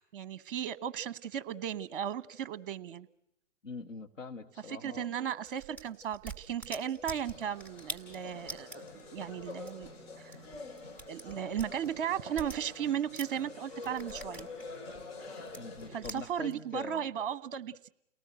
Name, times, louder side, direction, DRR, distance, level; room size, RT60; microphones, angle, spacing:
voice 1, 0.0-3.1 4.7-9.9 10.2-10.4 11.1-14.5 15.9-17.9, right 9 dB, 45° right, 15 dB, 1.0 m, -36 dB
voice 2, 3.6-5.1 15.5-17.0, left 4 dB, 80° left, 4 dB, 2.0 m, -43 dB
sound 1, 5.5-13.4 13.7-16.6, right 3 dB, 5° left, 1.7 m, -46 dB
sound 2, 7.0-16.1, left 3 dB, 50° left, 5.0 m, -47 dB
29.5 x 18.5 x 8.0 m, 0.79 s
figure-of-eight pair, 120°, 38 cm